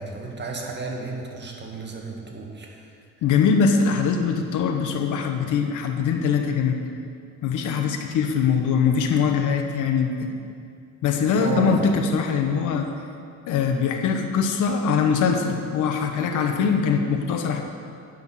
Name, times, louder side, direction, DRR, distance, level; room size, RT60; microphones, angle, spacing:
voice 1, 0.0-2.8 11.3-11.7, right 4 dB, 35° right, 0 dB, 1.9 m, -32 dB
voice 2, 3.2-6.8 7.4-10.3 11.0-12.9 13.5-17.6, left 6 dB, 90° left, 4 dB, 1.0 m, -22 dB
9.0 x 6.2 x 7.2 m, 2.4 s
cardioid pair, 90°, 30 cm